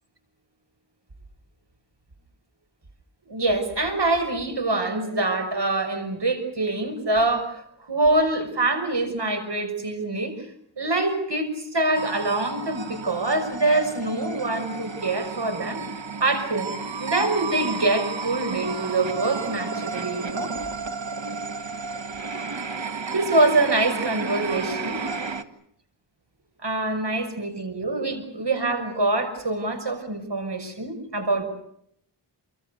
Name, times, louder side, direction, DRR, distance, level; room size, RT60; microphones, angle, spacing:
voice 1, 3.3-10.5 10.8-15.8 16.2-16.7 17.0-20.5 23.1-25.0 26.6-31.4, right 2 dB, 65° right, 6 dB, 6.2 m, -25 dB
sound 1, 11.9-25.4, right 4 dB, 90° right, 1.9 m, -32 dB
29.5 x 24.0 x 6.7 m, 0.72 s
wide cardioid pair, 60°, 44 cm